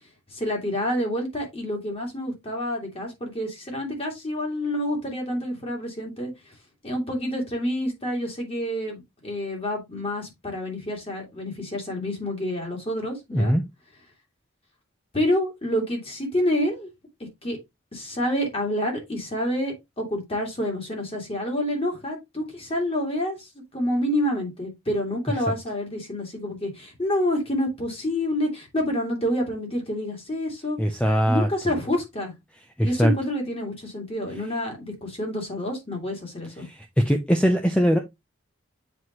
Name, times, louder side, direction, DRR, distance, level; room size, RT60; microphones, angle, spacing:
voice 1, 0.3-6.3 6.8-13.6 15.1-16.9 17.4-17.6 17.9-23.5 23.7-30.8 31.3-32.3 32.8-36.7, left 1 dB, 25° left, 2.6 m, -28 dB
voice 2, 13.3-13.6 30.8-31.5 32.8-33.1 36.6-36.8 37.0-38.0, equal, 5° left, 0.6 m, -21 dB
7.8 x 4.7 x 3.0 m
head